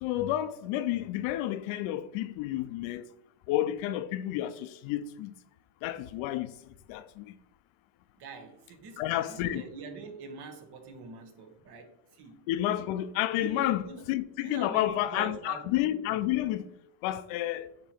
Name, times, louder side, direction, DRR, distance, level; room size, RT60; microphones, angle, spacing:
voice 1, 0.0-3.0 3.5-5.3 5.8-6.5 6.9-7.3 9.0-9.6 12.5-13.8 14.1-16.7 17.0-17.7, left 13 dB, 75° left, 0.7 m, -30 dB
voice 2, 8.2-12.5 13.4-14.0 14.4-15.7, right 4 dB, 55° right, 1.4 m, -44 dB
8.5 x 3.1 x 4.4 m
cardioid pair, 110°, 47 cm